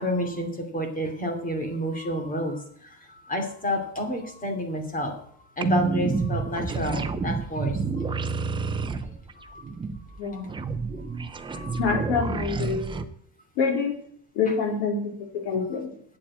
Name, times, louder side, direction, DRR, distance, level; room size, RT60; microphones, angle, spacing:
voice 1, 0.0-5.1 5.6-8.1 9.4-9.6 10.0-10.5 11.3-11.9, equal, 15° left, 3 dB, 2.6 m, -30 dB
sound 1, 5.6-13.0, right 4 dB, 10° right, 0.3 m, -29 dB
voice 2, 11.8-12.9 13.6-13.9 14.3-15.9, left 5 dB, 90° left, 2 dB, 3.9 m, -26 dB
8.6 x 7.4 x 8.5 m, 0.64 s
cardioid pair, 150°, 49 cm